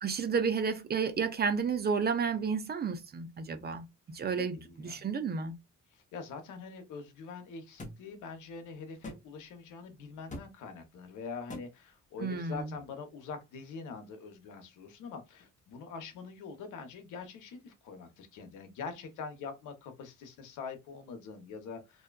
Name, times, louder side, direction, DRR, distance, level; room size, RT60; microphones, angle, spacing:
voice 1, 0.0-4.6 4.9-5.6 12.2-12.7, right 5 dB, 35° right, 0.5 m, -31 dB
voice 2, 4.4-5.1 5.9-22.0, left 5 dB, 85° left, 0.8 m, -44 dB
sound 1, 7.8-8.0 9.0-9.2 10.3-10.5 11.5-11.7, left 1 dB, 25° left, 0.7 m, -41 dB
2.6 x 2.2 x 2.2 m
cardioid pair, 90°, 30 cm